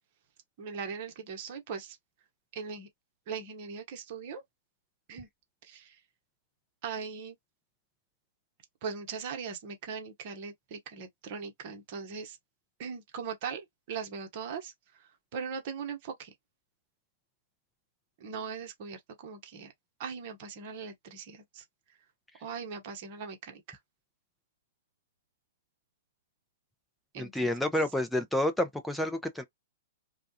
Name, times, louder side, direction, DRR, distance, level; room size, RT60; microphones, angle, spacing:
voice 1, 0.6-2.0 2.5-2.9 3.3-4.4 5.1-5.3 5.6-6.0 6.8-7.4 8.8-12.4 12.8-16.3 18.2-19.7 20.0-22.0 22.4-23.8 27.1-27.5, right 6 dB, 50° right, 1.0 m, -40 dB
voice 2, 27.2-29.4, left 1 dB, 5° left, 0.6 m, -29 dB
2.4 x 2.2 x 2.7 m
hypercardioid pair, 115°, 0 cm